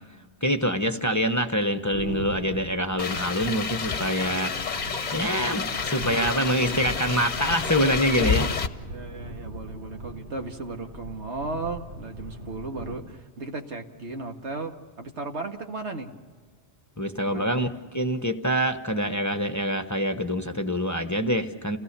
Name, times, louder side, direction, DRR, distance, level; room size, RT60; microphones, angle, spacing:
voice 1, 0.4-4.5 5.1-8.5 17.0-21.8, equal, 15° left, 6 dB, 1.0 m, -25 dB
sound 1, 1.9-13.0, right 1 dB, 50° right, 2.3 m, -40 dB
sound 2, 3.0-8.7, left 5 dB, 45° left, 1.0 m, -29 dB
voice 2, 5.7-6.8 8.9-16.1 17.3-17.7, right 3 dB, 80° right, 4 dB, 2.0 m, -36 dB
29.5 x 17.5 x 6.8 m, 1.4 s
omnidirectional pair, 1.1 m